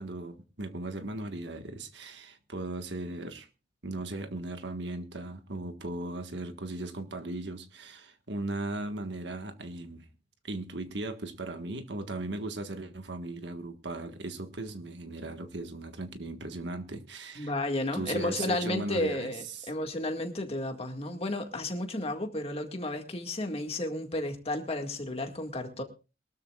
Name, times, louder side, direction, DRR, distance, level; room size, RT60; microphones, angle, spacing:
voice 1, 0.0-3.5 3.8-10.1 10.4-17.5 17.9-19.7, right 2 dB, 75° right, 1.6 m, -37 dB
voice 2, 17.4-25.8, left 1 dB, 35° left, 2.0 m, -32 dB
22.5 x 13.0 x 2.4 m
head